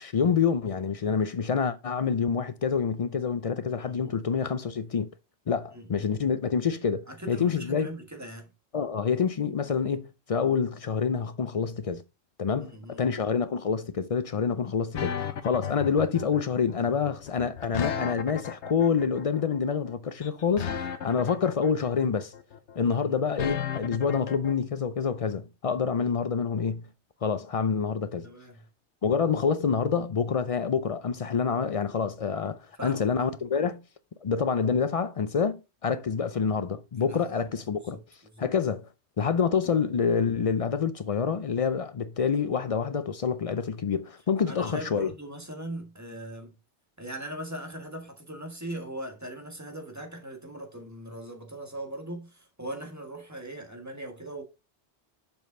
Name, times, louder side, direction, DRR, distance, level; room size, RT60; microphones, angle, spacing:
voice 1, 0.0-5.1 5.5-7.9 8.7-12.0 12.4-22.3 22.8-26.9 27.2-28.3 29.0-33.8 34.2-38.0 38.4-38.9 39.2-45.1, left 6 dB, 55° left, 0.4 m, -27 dB
voice 2, 3.8-4.2 5.7-6.1 7.1-8.5 12.6-13.2 21.3-21.4 22.8-23.2 26.0-26.1 28.2-28.6 32.8-33.3 37.0-38.5 39.6-39.8 44.5-46.6 47.0-54.4, right 1 dB, 15° right, 1.4 m, -40 dB
sound 1, 14.9-24.5, left 8 dB, 80° left, 1.1 m, -34 dB
7.1 x 5.2 x 3.7 m
omnidirectional pair, 1.2 m